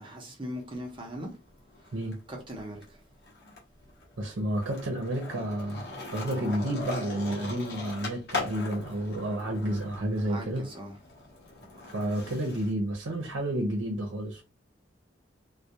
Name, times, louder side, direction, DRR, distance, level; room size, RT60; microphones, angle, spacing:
voice 1, 0.0-1.3 2.3-3.0 10.2-11.0, equal, 25° right, 0.6 m, -39 dB
Skateboard, 0.6-2.1 2.5-12.7, left 3 dB, 55° left, 0.8 m, -40 dB
voice 2, 4.2-10.7 11.9-14.4, right 1 dB, 75° right, 0.6 m, -31 dB
2.3 x 2.1 x 2.7 m
head